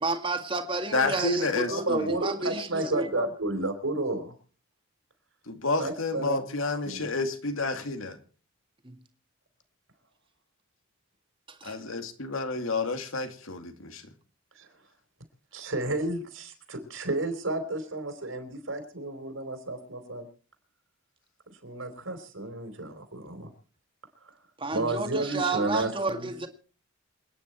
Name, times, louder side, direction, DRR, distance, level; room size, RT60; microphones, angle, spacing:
voice 1, 0.0-3.3 8.8-9.0 11.6-11.8 24.6-26.5, right 3 dB, 25° right, 1.9 m, -31 dB
voice 2, 0.9-2.1 5.5-8.2 11.6-14.0, left 3 dB, 75° left, 2.4 m, -30 dB
voice 3, 1.7-4.3 5.8-6.4 6.8-7.1 14.6-14.7 15.5-20.3 21.6-23.5 24.2-24.3 24.7-26.5, right 2 dB, 75° right, 4.3 m, -32 dB
27.5 x 10.0 x 4.5 m
head